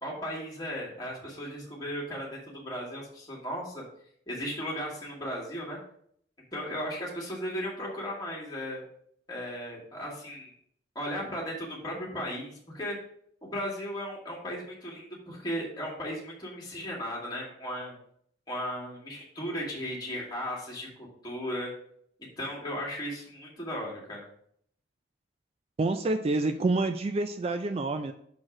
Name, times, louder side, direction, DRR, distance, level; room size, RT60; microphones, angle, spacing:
voice 1, 0.0-3.8 4.3-5.8 6.5-8.8 9.3-10.5 11.0-13.0 13.4-18.0 18.5-21.7 22.4-24.3, equal, 20° left, -4 dB, 2.1 m, -36 dB
voice 2, 25.8-28.1, right 2 dB, 35° right, 9 dB, 0.3 m, -28 dB
6.2 x 4.4 x 4.8 m, 0.66 s
head